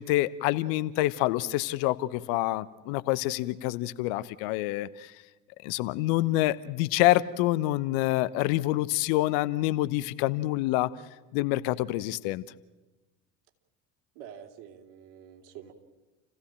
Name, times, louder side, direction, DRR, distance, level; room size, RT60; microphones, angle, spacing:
voice 1, 0.0-5.1 5.6-10.9 11.3-12.4, left 16 dB, 60° left, 15 dB, 1.1 m, -27 dB
voice 2, 14.1-15.7, right 9 dB, 60° right, 4 dB, 3.3 m, -47 dB
29.5 x 15.5 x 8.9 m, 1.1 s
hypercardioid pair, 70°, 45 cm